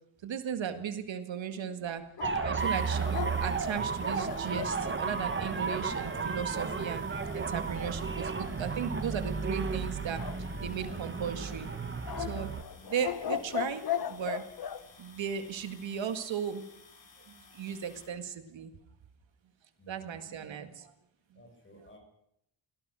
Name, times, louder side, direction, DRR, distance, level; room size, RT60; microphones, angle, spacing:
voice 1, 0.2-2.0 2.4-10.2 10.6-11.7 12.2-12.5 12.9-14.4 15.0-16.6 17.5-18.7 19.9-20.9, right 7 dB, 80° right, 8 dB, 2.0 m, -36 dB
sound 1, 2.2-4.8 10.2-11.0 12.1-14.8, left 9 dB, 55° left, 1.2 m, -37 dB
sound 2, 2.2-12.6, right 5 dB, 25° right, 1.6 m, -33 dB
sound 3, 2.6-18.1, left 4 dB, 90° left, 7.9 m, -57 dB
voice 2, 19.8-20.6 21.3-22.0, equal, 25° left, 3 dB, 6.5 m, -56 dB
24.0 x 17.0 x 6.3 m, 0.76 s
wide cardioid pair, 170°, 44 cm